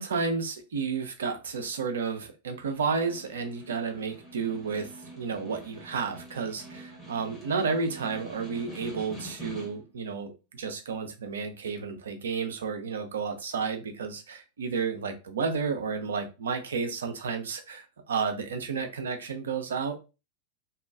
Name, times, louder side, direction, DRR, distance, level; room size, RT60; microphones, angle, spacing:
voice 1, 0.0-19.9, right 5 dB, 65° right, 5 dB, 0.5 m, -32 dB
Snare drum, 2.6-10.0, right 1 dB, 15° left, 1.1 m, -46 dB
2.6 x 2.2 x 2.4 m, 0.29 s
figure-of-eight pair, 90°, 0 cm